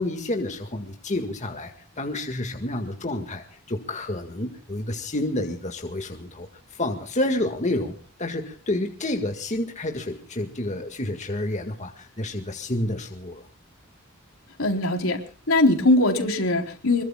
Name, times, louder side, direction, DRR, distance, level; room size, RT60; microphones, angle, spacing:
voice 1, 0.0-13.5, left 1 dB, 35° left, 4 dB, 1.9 m, -29 dB
voice 2, 14.6-15.2 15.5-17.0, left 2 dB, 75° left, 3 dB, 3.9 m, -21 dB
26.0 x 22.0 x 2.3 m, 0.42 s
head